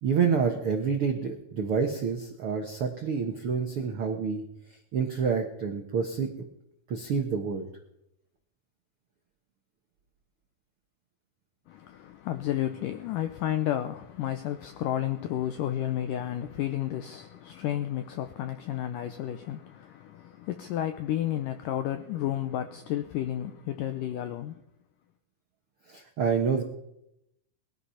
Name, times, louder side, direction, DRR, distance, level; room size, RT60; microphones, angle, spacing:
voice 1, 0.0-6.3 6.9-7.7 25.9-26.6, right 6 dB, 80° right, 1.2 m, -28 dB
voice 2, 11.7-24.6, left 12 dB, 90° left, 1.9 m, -32 dB
21.0 x 12.0 x 5.7 m
omnidirectional pair, 4.7 m